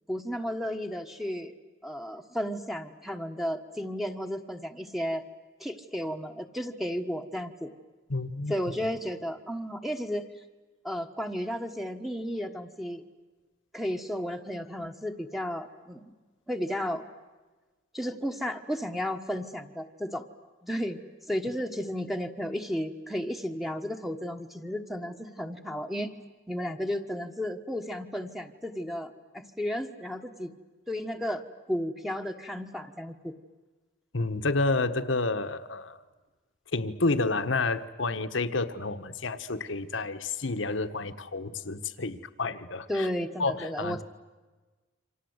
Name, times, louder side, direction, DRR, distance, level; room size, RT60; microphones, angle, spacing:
voice 1, 0.1-1.5 1.8-5.2 5.6-7.7 8.5-10.3 10.8-13.0 13.7-16.1 16.5-17.0 17.9-20.2 20.6-21.0 21.3-26.1 26.5-30.5 30.9-31.4 31.7-33.3 42.9-44.0, equal, ahead, 5 dB, 1.4 m, -33 dB
voice 2, 8.1-8.5 34.1-36.0 36.7-43.1 43.4-44.0, left 3 dB, 70° left, 10 dB, 1.3 m, -30 dB
28.5 x 26.0 x 8.1 m, 1.3 s
head